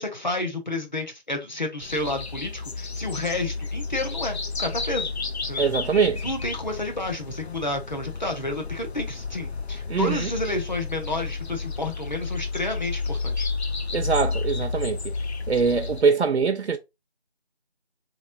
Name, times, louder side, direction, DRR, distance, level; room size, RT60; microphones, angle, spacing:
voice 1, 0.0-5.1 5.5-5.6 6.2-13.5, left 2 dB, 45° left, 0.9 m, -30 dB
sound 1, 1.8-16.0, left 4 dB, 75° left, 0.6 m, -31 dB
voice 2, 5.6-6.2 9.9-10.3 13.9-15.1 15.5-16.8, right 5 dB, 85° right, 0.5 m, -23 dB
3.7 x 3.0 x 2.5 m
figure-of-eight pair, 170°, 33 cm